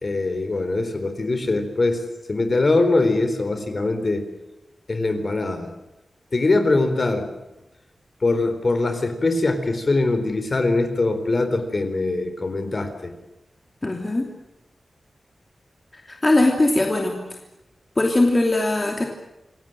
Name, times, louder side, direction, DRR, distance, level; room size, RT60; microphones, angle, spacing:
voice 1, 0.0-2.0 2.3-4.2 4.9-5.7 6.3-7.3 8.2-13.1, left 2 dB, 40° left, 8 dB, 4.1 m, -22 dB
voice 2, 13.8-14.3 16.1-17.2 18.0-19.0, left 2 dB, 25° left, 2 dB, 2.9 m, -20 dB
27.5 x 17.5 x 9.1 m, 0.96 s
wide cardioid pair, 120°, 0 cm